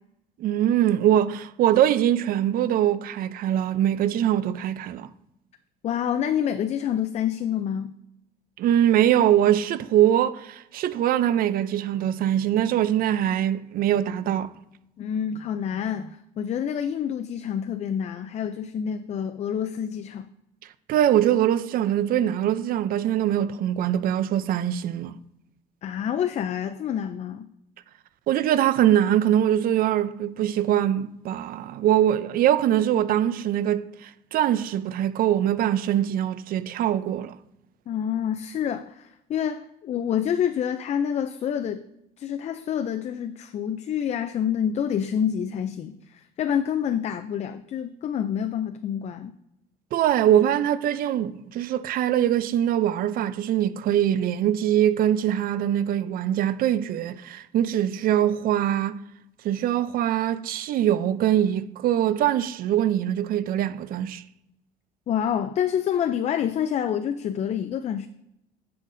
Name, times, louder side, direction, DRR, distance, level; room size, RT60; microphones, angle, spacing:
voice 1, 0.4-5.1 8.6-14.5 20.9-25.1 28.3-37.4 49.9-59.0 59.4-64.2, right 11 dB, 60° right, 0.4 m, -23 dB
voice 2, 5.8-7.9 15.0-20.3 25.8-27.5 37.9-41.8 42.2-49.3 65.1-68.1, left 9 dB, 40° left, 0.4 m, -27 dB
9.8 x 5.7 x 2.6 m
cardioid pair, 110°, 17 cm